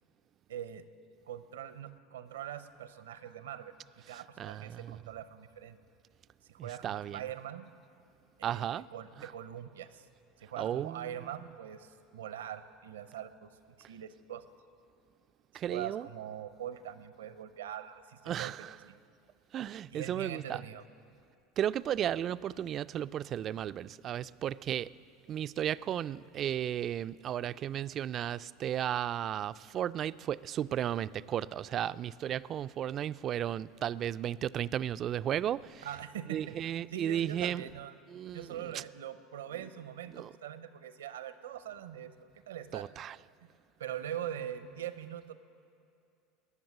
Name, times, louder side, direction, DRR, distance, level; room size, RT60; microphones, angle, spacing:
voice 1, 0.5-0.8 1.3-3.7 4.1-5.8 6.5-7.7 8.4-10.1 10.4-13.5 13.8-14.5 15.5-18.5 18.8-19.0 19.9-20.8 35.8-36.6 36.9-37.9 38.3-42.1 42.5-42.9 43.4-43.5 43.8-45.3, right 10 dB, 80° right, 12 dB, 0.7 m, -42 dB
voice 2, 4.4-5.0 6.6-7.2 8.4-8.9 9.2-9.3 10.6-11.1 15.5-16.1 18.3-18.7 19.5-20.6 21.6-24.9 25.3-35.9 36.3-37.6 38.1-38.5 40.1-40.3 42.7-43.2, right 10 dB, 45° right, 15 dB, 0.3 m, -34 dB
19.5 x 7.2 x 9.7 m, 2.5 s
hypercardioid pair, 80°, 0 cm